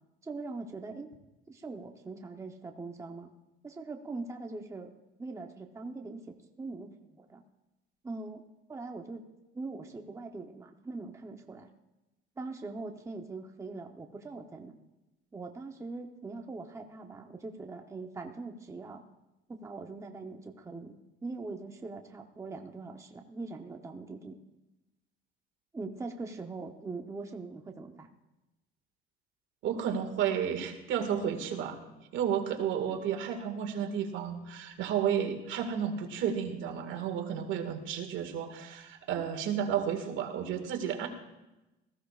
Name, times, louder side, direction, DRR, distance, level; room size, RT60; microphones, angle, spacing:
voice 1, 0.2-1.1 1.5-3.3 3.6-4.9 5.2-7.4 8.0-8.4 8.7-9.2 9.5-11.7 12.4-14.8 15.3-19.0 19.5-21.0 21.2-24.4 25.7-28.1, right 3 dB, 15° right, 4 dB, 0.8 m, -42 dB
voice 2, 29.6-31.8 32.1-41.1, right 8 dB, 70° right, 4 dB, 1.9 m, -32 dB
19.0 x 14.5 x 2.4 m, 1.0 s
cardioid pair, 135°, 20 cm